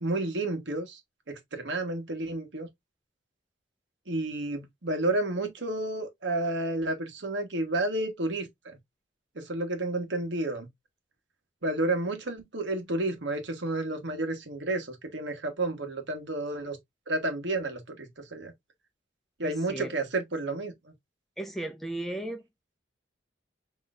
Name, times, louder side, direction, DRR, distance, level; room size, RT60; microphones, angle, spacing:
voice 1, 0.0-1.0 1.3-2.7 4.1-8.8 9.3-10.7 11.6-16.8 17.1-18.5 19.4-20.7, right 2 dB, 75° right, 1.4 m, -31 dB
voice 2, 19.4-19.9 21.4-22.4, right 1 dB, ahead, 0.7 m, -35 dB
6.1 x 3.1 x 2.5 m
head